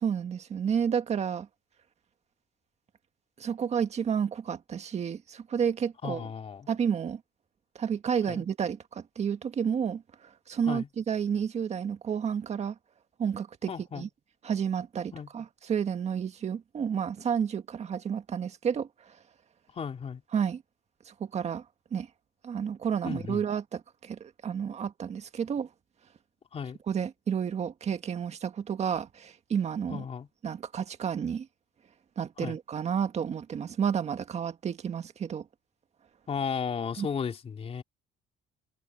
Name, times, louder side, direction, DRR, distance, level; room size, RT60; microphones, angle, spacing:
voice 1, 0.0-1.5 3.4-6.3 6.7-7.2 7.7-12.7 13.2-14.1 14.4-19.2 20.3-20.6 21.1-21.6 21.9-22.1 22.4-25.7 26.9-30.0 30.4-31.5 32.2-35.4 37.0-37.1, right 7 dB, 40° right, 1.7 m, -31 dB
voice 2, 6.0-6.7 8.3-8.4 10.7-10.9 13.7-14.1 15.1-15.3 19.7-20.2 23.0-23.4 26.5-26.8 29.9-30.3 32.4-32.6 36.3-37.8, left 6 dB, 35° left, 3.5 m, -34 dB
cardioid pair, 130°, 17 cm